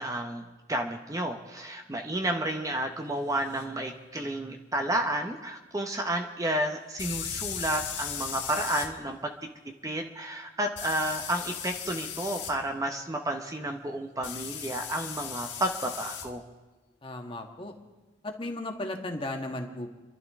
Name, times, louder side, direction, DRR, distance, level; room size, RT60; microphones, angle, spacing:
voice 1, 0.0-9.2 9.8-16.4, right 1 dB, 20° right, 4 dB, 0.9 m, -31 dB
sound 1, 3.5-3.6 7.0-8.9 10.8-12.5 14.2-16.3, left 8 dB, 70° left, 1.6 m, -37 dB
voice 2, 17.0-17.7 18.2-19.9, left 1 dB, 30° left, 3 dB, 1.5 m, -35 dB
29.5 x 12.0 x 3.6 m, 1.2 s
head